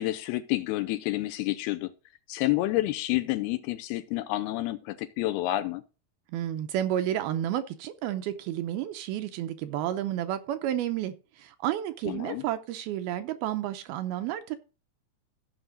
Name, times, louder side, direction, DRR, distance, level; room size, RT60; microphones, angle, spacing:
voice 1, 0.0-1.9 2.3-5.8 12.0-12.4, left 16 dB, 80° left, 2.5 m, -29 dB
voice 2, 6.3-14.6, right 11 dB, 80° right, 2.4 m, -31 dB
15.0 x 5.8 x 3.9 m
omnidirectional pair, 4.8 m